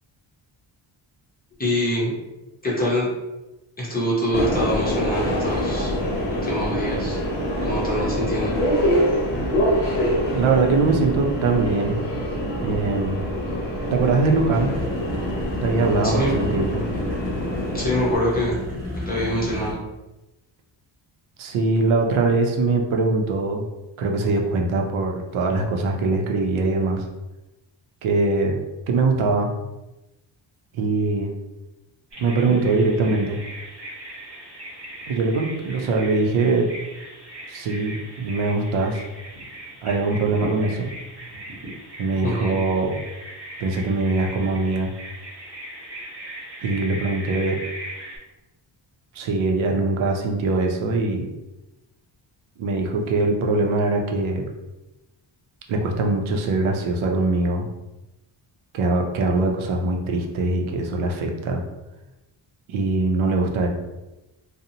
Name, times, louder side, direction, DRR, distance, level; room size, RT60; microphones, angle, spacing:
voice 1, 1.6-2.1 2.6-3.1 3.8-6.0 6.3-7.2 7.6-8.5 16.0-16.3 17.7-18.6 19.0-19.8 42.2-42.5, equal, 20° left, -6 dB, 0.6 m, -24 dB
Subway metro underground, 4.3-18.2, equal, 60° left, 0.7 m, -25 dB
voice 2, 10.3-12.0 12.6-13.2 13.9-14.8 15.6-16.8 21.4-23.7 24.0-27.1 28.0-28.6 28.9-29.5 30.7-31.3 32.2-33.4 35.1-36.7 37.5-39.1 39.8-40.9 42.0-43.0 43.6-44.9 46.6-47.6 49.1-51.3 52.6-54.5 55.7-57.7 58.7-61.6 62.7-63.7, right 3 dB, 80° right, 2 dB, 0.6 m, -22 dB
sound 1, 14.7-19.7, left 1 dB, 30° right, 0.9 m, -31 dB
Bird vocalization bird call bird song, 32.1-48.2, right 1 dB, 60° right, 1.2 m, -38 dB
2.6 x 2.0 x 2.7 m, 1.0 s
wide cardioid pair, 165°, 47 cm